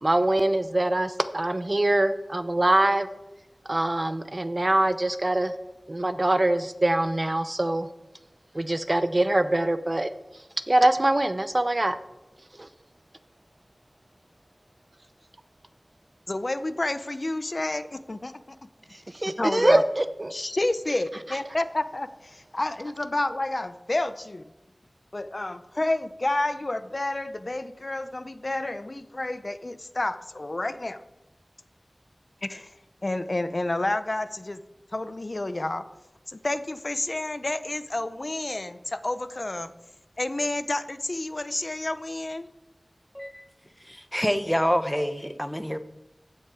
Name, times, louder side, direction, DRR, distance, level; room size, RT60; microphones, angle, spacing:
voice 1, 0.0-3.1 3.7-5.5 5.9-7.9 8.5-10.1 10.7-12.0 12.6-12.7 19.1-20.3, right 1 dB, 45° right, 11 dB, 0.7 m, -23 dB
voice 2, 16.3-18.6 18.9-19.0 19.2-19.8 20.3-24.5 25.1-31.0 32.4-32.8 33.0-34.6 34.9-35.8 36.3-39.7 40.2-42.5, left 2 dB, 55° left, 11 dB, 0.6 m, -30 dB
voice 3, 43.1-43.5 43.8-45.8, equal, 5° left, 10 dB, 0.9 m, -27 dB
15.0 x 7.4 x 4.9 m, 0.94 s
wide cardioid pair, 50°, 0 cm